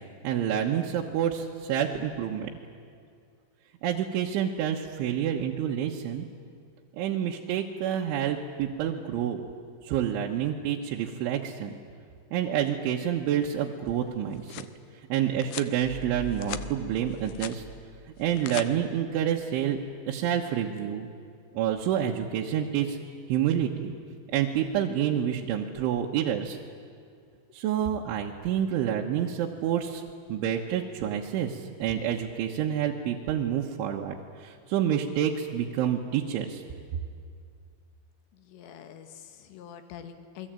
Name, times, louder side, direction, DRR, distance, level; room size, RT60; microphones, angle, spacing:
voice 1, 0.2-2.5 3.8-6.3 7.0-9.4 9.8-11.7 12.3-14.7 15.1-17.6 18.2-19.8 20.1-21.1 21.6-23.0 23.3-23.9 24.3-26.6 27.5-30.0 30.3-36.6, right 9 dB, 75° right, -1 dB, 3.5 m, -28 dB
sound 1, 14.1-14.7 15.4-15.7 16.2-16.7 17.0-17.6 18.2-18.7, left 14 dB, 85° left, 2.2 m, -39 dB
sound 2, 15.8-19.1, left 1 dB, 10° left, 2.6 m, -45 dB
voice 2, 38.3-40.5, left 9 dB, 65° left, 8 dB, 3.6 m, -45 dB
28.0 x 21.5 x 8.9 m, 2.3 s
omnidirectional pair, 5.7 m